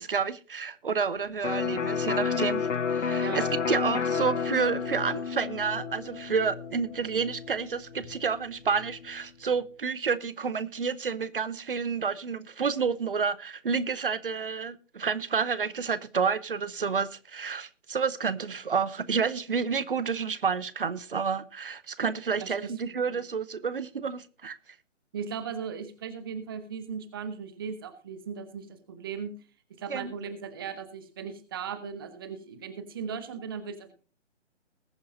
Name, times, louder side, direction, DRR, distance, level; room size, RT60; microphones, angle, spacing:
voice 1, 0.0-24.6 29.9-30.1, right 5 dB, 50° right, 0.8 m, -30 dB
Electric guitar, 1.4-9.1, left 6 dB, 90° left, 0.6 m, -31 dB
voice 2, 22.4-23.2 25.1-29.3 29.7-33.9, right 6 dB, 20° right, 0.8 m, -38 dB
20.5 x 9.5 x 2.6 m
figure-of-eight pair, 140°, 36 cm